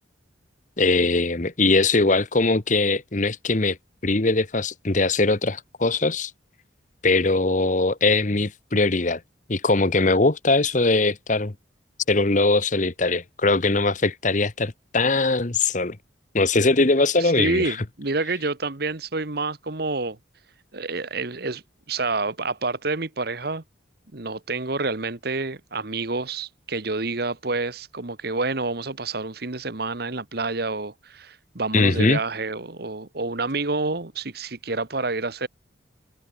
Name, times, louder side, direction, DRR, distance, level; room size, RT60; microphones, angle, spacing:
voice 1, 0.8-3.8 4.0-6.3 7.0-9.2 9.5-11.5 12.1-16.0 16.3-17.8 31.7-32.2, left 3 dB, 40° left, 1.1 m, -21 dB
voice 2, 17.2-20.2 20.7-21.6 21.9-23.6 24.1-35.5, right 3 dB, 55° right, 1.3 m, -28 dB
head